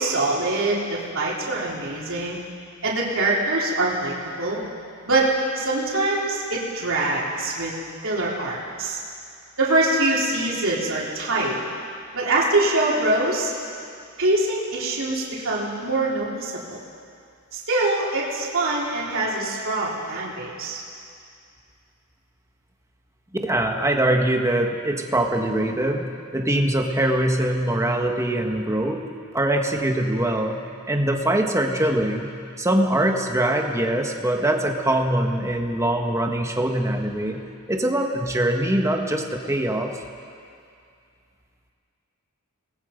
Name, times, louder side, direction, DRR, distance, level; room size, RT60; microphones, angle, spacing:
voice 1, 0.0-2.4 2.8-4.6 5.1-5.3 5.6-7.7 8.0-9.0 9.6-11.6 12.1-13.5 14.2-16.8 17.5-20.8, right 2 dB, 65° right, -5 dB, 3.7 m, -24 dB
voice 2, 23.4-29.0 29.3-30.6 30.9-32.3 32.6-37.4 37.7-39.9, right 1 dB, 15° right, 2 dB, 1.7 m, -23 dB
28.5 x 20.0 x 5.3 m, 2.4 s
head